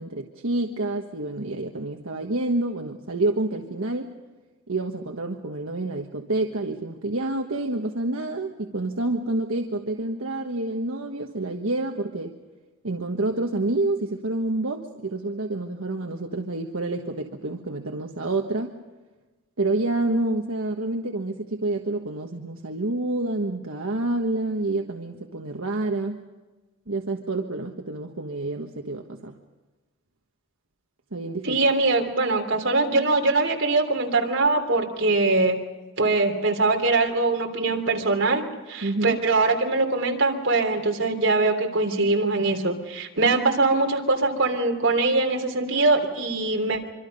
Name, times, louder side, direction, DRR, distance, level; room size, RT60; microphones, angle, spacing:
voice 1, 0.0-4.1 4.7-12.4 12.8-18.8 19.6-26.2 26.9-29.4 31.1-31.6 38.8-39.2, right 2 dB, 80° right, 3 dB, 1.4 m, -28 dB
voice 2, 31.4-35.6 36.0-46.8, right 3 dB, 65° right, 3 dB, 3.3 m, -22 dB
25.5 x 25.0 x 5.4 m, 1.2 s
head